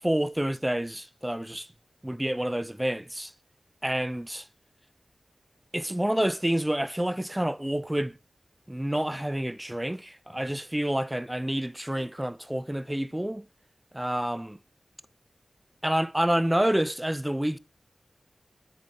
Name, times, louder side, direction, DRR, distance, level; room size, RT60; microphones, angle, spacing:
voice 1, 0.0-1.7 2.0-3.3 3.8-4.5 5.7-8.2 8.7-13.4 13.9-14.6 15.8-17.6, right 1 dB, 10° right, 0.4 m, -28 dB
10.5 x 4.0 x 4.3 m
cardioid pair, 50°, 0 cm